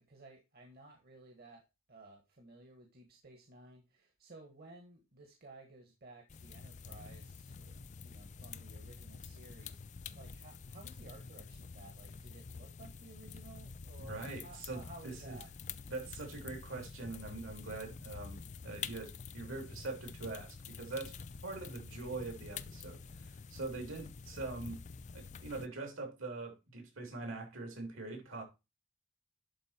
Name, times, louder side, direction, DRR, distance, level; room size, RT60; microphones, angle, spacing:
voice 1, 0.1-1.6 1.9-7.8 8.0-15.5, right 2 dB, 50° right, 1.6 m, -56 dB
sound 1, 6.3-25.7, left 5 dB, 35° left, 0.4 m, -48 dB
voice 2, 14.1-15.4 15.9-18.4 18.6-21.1 21.4-24.8 25.4-28.4, right 3 dB, 75° right, 3.3 m, -43 dB
11.5 x 4.3 x 4.4 m
head